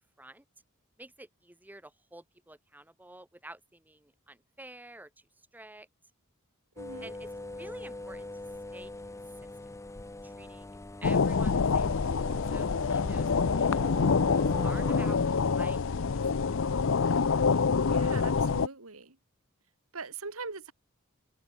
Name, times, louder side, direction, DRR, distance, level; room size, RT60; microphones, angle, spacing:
voice 1, 1.0-5.3 5.5-5.9 7.0-8.3 8.7-9.2 10.2-10.8 11.0-12.0 12.5-16.2, right 1 dB, 10° right, 1.5 m, -50 dB
sound 1, 6.8-15.2, left 2 dB, 15° left, 0.7 m, -42 dB
voice 2, 6.8-7.1 17.9-19.2 19.9-20.7, right 4 dB, 90° right, 2.8 m, -42 dB
sound 2, 11.0-18.7, left 5 dB, 65° left, 0.6 m, -26 dB
head